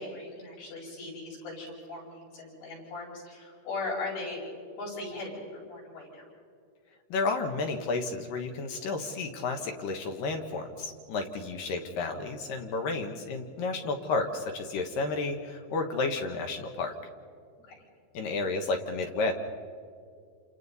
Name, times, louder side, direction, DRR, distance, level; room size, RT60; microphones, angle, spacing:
voice 1, 0.0-4.5 4.7-6.3 17.7-17.8, left 2 dB, 80° left, -5 dB, 9.6 m, -38 dB
voice 2, 7.1-16.9 18.1-19.3, left 3 dB, 65° left, 4 dB, 2.6 m, -31 dB
29.0 x 28.5 x 4.1 m, 2.3 s
omnidirectional pair, 4.7 m